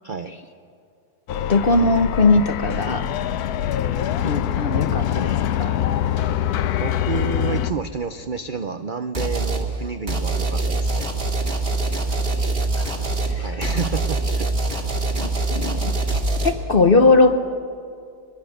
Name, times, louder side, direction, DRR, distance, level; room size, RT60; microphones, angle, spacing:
voice 1, 0.0-0.3 6.6-11.1 13.4-14.9, right 5 dB, 60° right, 8 dB, 0.5 m, -30 dB
sound 1, 1.3-7.7, left 10 dB, 70° left, 1.1 m, -24 dB
voice 2, 1.5-3.1 4.2-5.8 12.4-13.0 13.4-13.5 15.2-15.9 16.4-17.3, left 3 dB, 45° left, 8 dB, 0.8 m, -19 dB
sound 2, 9.1-9.7 10.1-16.5, right 2 dB, 35° right, 2.1 m, -24 dB
22.0 x 22.0 x 6.5 m, 2.5 s
omnidirectional pair, 1.8 m